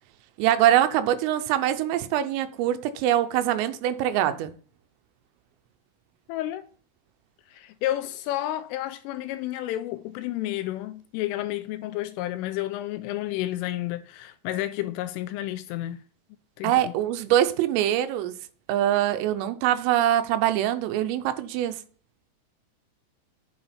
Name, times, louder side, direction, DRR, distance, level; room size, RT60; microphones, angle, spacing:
voice 1, 0.4-4.5 16.6-18.3 18.7-21.8, right 12 dB, 85° right, 3.3 m, -23 dB
voice 2, 6.3-6.7 7.5-16.0 16.6-16.9, left 14 dB, 85° left, 3.0 m, -31 dB
8.7 x 7.0 x 4.3 m
omnidirectional pair, 5.9 m